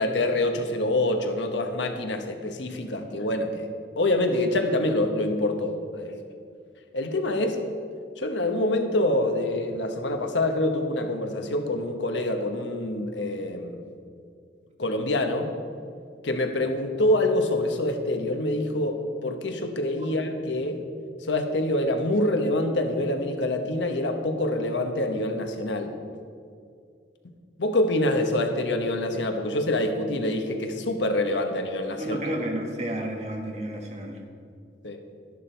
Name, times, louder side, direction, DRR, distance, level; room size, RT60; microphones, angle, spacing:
voice 1, 0.0-3.7 4.0-6.2 6.9-7.6 8.2-13.8 14.8-15.5 16.2-20.8 21.3-25.9 27.6-32.2 34.8-35.0, left 1 dB, 85° left, 5 dB, 1.1 m, -26 dB
voice 2, 32.0-34.2, right 1 dB, 35° right, 1 dB, 1.5 m, -31 dB
12.0 x 11.0 x 4.5 m, 2.3 s
head